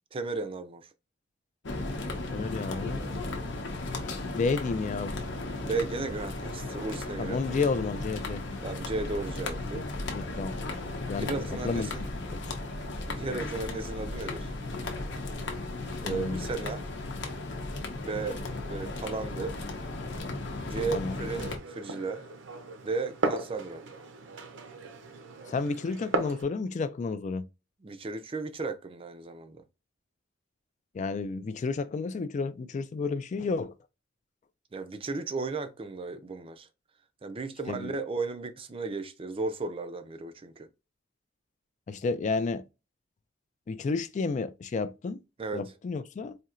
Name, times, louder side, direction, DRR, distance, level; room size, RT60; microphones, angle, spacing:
voice 1, 0.1-0.9 5.6-7.6 8.6-9.8 11.1-12.1 13.1-14.5 16.0-16.8 18.0-19.6 20.7-22.2 22.8-23.8 27.8-29.6 34.7-36.7 37.2-40.7 45.4-45.6, right 3 dB, 30° right, 0.4 m, -35 dB
sound 1, 1.6-21.6, left 2 dB, 70° left, 0.8 m, -35 dB
voice 2, 2.3-3.2 4.3-5.3 7.2-8.5 10.1-10.6 10.9-11.9 12.3-12.6 16.0-16.5 20.9-21.2 25.5-27.5 30.9-33.7 37.7-37.9 41.9-42.6 43.7-45.2 45.5-46.4, left 4 dB, 40° left, 0.3 m, -31 dB
Glass, 21.3-26.4, right 2 dB, 70° right, 0.6 m, -36 dB
4.3 x 2.7 x 2.4 m
head